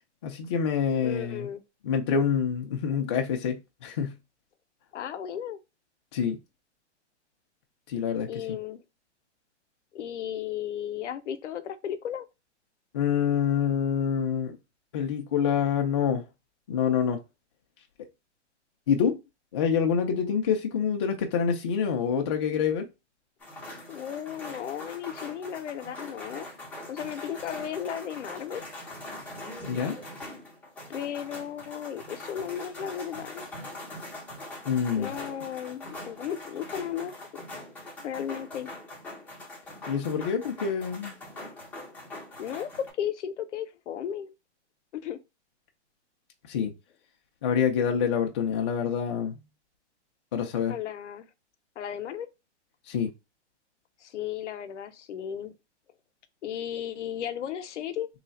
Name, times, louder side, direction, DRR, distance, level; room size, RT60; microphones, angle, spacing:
voice 1, 0.2-1.5 1.8-4.2 6.1-6.4 7.9-8.3 12.9-14.6 14.9-16.2 16.7-17.2 18.9-19.2 19.5-22.9 29.7-30.0 34.7-35.1 39.9-41.1 46.5-46.7 47.4-49.4 50.3-50.8 52.9-53.1, left 7 dB, 25° left, 0.4 m, -26 dB
voice 2, 1.0-1.6 4.9-5.6 8.3-8.8 9.9-12.3 23.9-26.5 26.9-28.6 30.9-33.5 35.0-37.4 38.0-38.7 42.4-44.3 44.9-45.2 50.7-51.3 51.8-52.3 54.0-55.5 56.4-58.1, left 9 dB, 80° left, 0.7 m, -35 dB
sound 1, 23.4-42.9, left 1 dB, 5° left, 0.7 m, -42 dB
3.1 x 2.3 x 4.0 m
hypercardioid pair, 155°, 35 cm